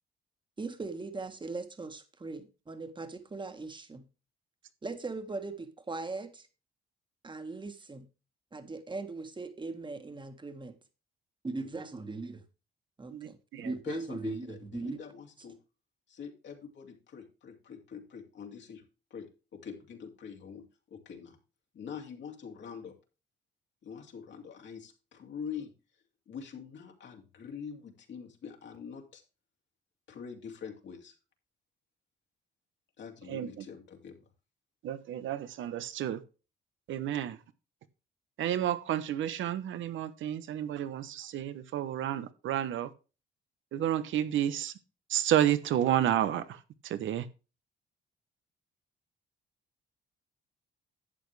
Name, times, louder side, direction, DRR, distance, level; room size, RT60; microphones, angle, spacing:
voice 1, 0.6-4.1 4.8-6.5 7.2-8.1 8.5-10.8 11.4-12.4 13.0-15.0, right 3 dB, 25° right, 1.8 m, -39 dB
voice 2, 13.1-13.7 33.3-33.6 34.8-36.2 36.9-37.4 38.4-42.9 43.7-44.7 45.1-47.3, right 11 dB, 80° right, 1.1 m, -31 dB
voice 3, 13.8-15.6 16.1-18.8 19.1-21.4 21.7-22.9 23.8-25.7 26.3-29.2 30.1-31.2 33.0-34.3, left 7 dB, 65° left, 2.7 m, -44 dB
11.5 x 8.3 x 3.4 m
cardioid pair, 90°, 20 cm